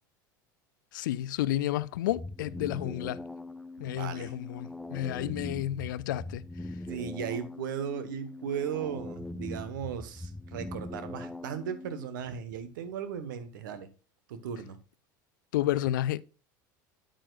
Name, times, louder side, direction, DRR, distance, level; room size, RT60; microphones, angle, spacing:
voice 1, 0.9-3.2 3.8-6.4 15.5-16.2, left 13 dB, 75° left, 0.4 m, -31 dB
sound 1, 2.1-12.1, left 2 dB, 5° left, 0.5 m, -41 dB
voice 2, 3.8-4.4 6.9-13.9 14.3-14.8, right 8 dB, 75° right, 1.2 m, -36 dB
8.9 x 8.9 x 2.4 m
hypercardioid pair, 85°, 11 cm